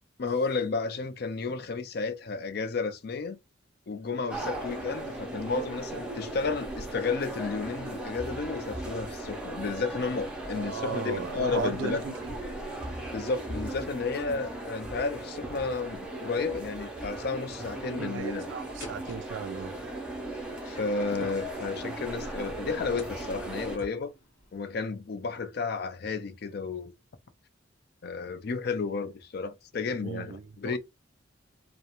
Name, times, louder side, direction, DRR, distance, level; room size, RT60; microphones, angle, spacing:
voice 1, 0.2-3.4 3.9-12.0 13.1-18.5 20.7-24.1 24.5-26.9 28.0-30.8, left 4 dB, 50° left, 0.4 m, -32 dB
sound 1, 4.3-23.8, right 2 dB, 5° right, 0.5 m, -37 dB
voice 2, 10.5-12.3 18.0-19.8 30.0-30.8, right 6 dB, 65° right, 0.3 m, -36 dB
sound 2, 18.8-24.5, left 3 dB, 80° left, 0.8 m, -51 dB
2.4 x 2.0 x 2.8 m
head